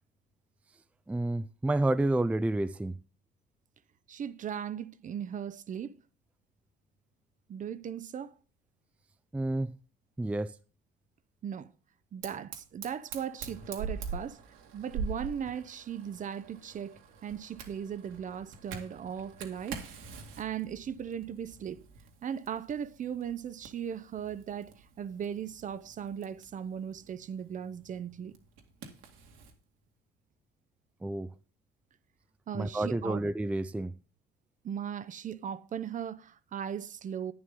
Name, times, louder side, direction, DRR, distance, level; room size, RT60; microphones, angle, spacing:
voice 1, 1.1-2.9 9.3-9.7 10.2-10.5 31.0-31.3 32.5-33.9, right 2 dB, 5° right, 0.4 m, -29 dB
voice 2, 4.1-6.0 7.5-8.3 11.4-11.7 12.1-14.4 14.7-19.8 20.4-21.8 22.2-28.4 32.5-33.2 34.6-37.3, right 8 dB, 40° right, 0.7 m, -38 dB
Fire, 12.2-29.6, right 5 dB, 75° right, 2.1 m, -45 dB
11.0 x 9.5 x 3.8 m
supercardioid pair, 100°, 21 cm